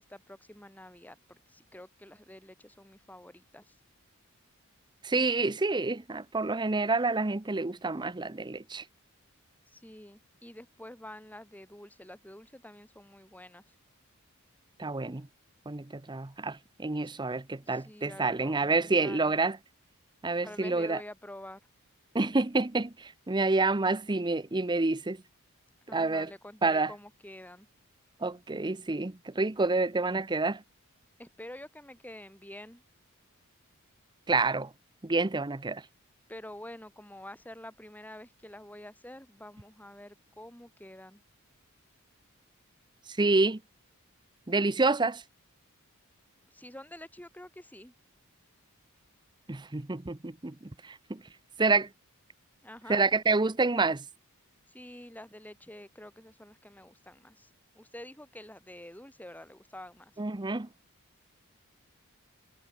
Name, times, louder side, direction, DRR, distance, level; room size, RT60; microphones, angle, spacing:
voice 1, 0.0-3.8 9.7-13.6 17.0-17.1 17.5-19.3 20.4-21.6 25.9-27.7 31.2-32.8 36.3-41.2 46.5-47.9 52.6-53.0 54.7-57.5 57.7-60.1, left 1 dB, 5° left, 7.7 m, -48 dB
voice 2, 5.0-8.8 14.8-15.3 15.7-19.6 20.2-21.0 22.1-25.2 25.9-26.3 26.6-26.9 28.2-30.6 34.3-34.7 35.0-35.8 43.1-43.6 44.5-45.2 49.5-51.2 51.6-51.9 52.9-54.0 60.2-60.7, right 3 dB, 20° right, 0.7 m, -28 dB
head